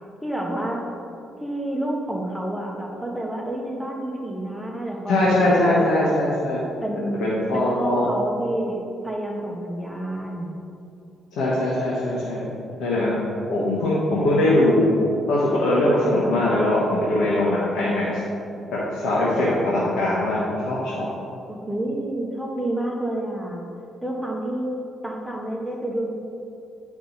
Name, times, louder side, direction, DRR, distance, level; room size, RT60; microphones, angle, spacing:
voice 1, 0.2-0.8 1.4-6.1 6.8-10.6 21.5-23.6 24.0-24.7 25.0-26.1, right 1 dB, 5° right, -1 dB, 1.3 m, -29 dB
voice 2, 5.1-6.6 7.2-8.1 11.3-12.4 12.8-13.1 13.5-14.9 15.3-18.2 18.7-21.1, left 1 dB, 85° left, -7 dB, 1.4 m, -21 dB
10.0 x 5.3 x 4.1 m, 2.7 s
cardioid pair, 90°, 0 cm